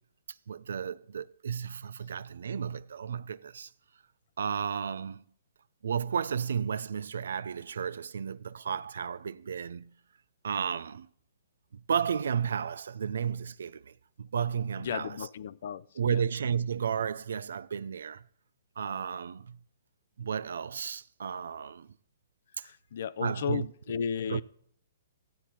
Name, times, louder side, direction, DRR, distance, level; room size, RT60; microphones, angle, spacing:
voice 1, 0.5-3.7 4.4-5.2 5.8-9.9 10.4-11.1 11.7-15.2 16.0-18.2 18.8-19.6 20.2-21.9 23.2-23.7 24.3-24.4, right 7 dB, 80° right, 0.4 m, -33 dB
voice 2, 14.8-16.2 22.6-24.4, left 7 dB, 60° left, 0.5 m, -34 dB
14.5 x 8.3 x 4.4 m
hypercardioid pair, 150°, 0 cm